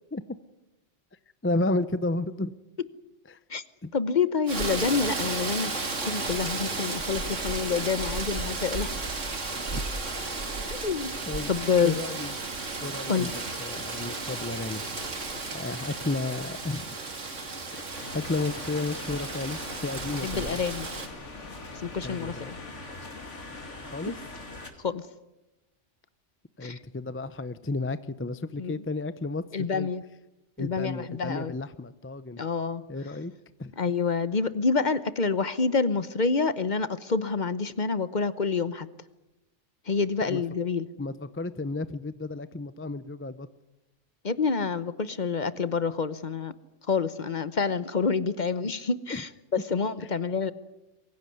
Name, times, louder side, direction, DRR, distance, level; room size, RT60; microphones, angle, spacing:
voice 1, 1.4-2.5 3.3-3.4 3.8-3.9 9.7-9.8 11.3-11.5 11.8-12.3 12.8-13.3 13.6-14.8 15.5-17.0 17.7-17.8 18.1-20.6 22.0-22.5 23.9-24.2 26.6-29.9 30.6-32.4 32.9-33.3 33.6-33.7 40.2-40.4 41.0-43.5 49.1-49.2 50.0-50.1, left 2 dB, 15° left, 14 dB, 0.5 m, -32 dB
voice 2, 3.9-5.7 6.0-9.0 10.7-11.2 11.5-12.0 13.1-13.3 20.2-20.9 21.7-22.6 24.8-25.0 26.6-26.8 28.6-28.8 29.5-30.0 30.6-31.5 32.4-32.8 33.8-38.9 39.9-40.9 44.2-46.5 46.9-50.5, left 5 dB, 40° left, 15 dB, 1.0 m, -27 dB
Rain, 4.5-21.1, right 3 dB, 85° right, 2.6 m, -34 dB
sound 1, 6.2-15.8, right 1 dB, 50° right, 4.5 m, -51 dB
sound 2, 17.9-24.7, left 2 dB, 75° left, 2.8 m, -41 dB
23.5 x 16.0 x 9.5 m, 0.98 s
omnidirectional pair, 1.2 m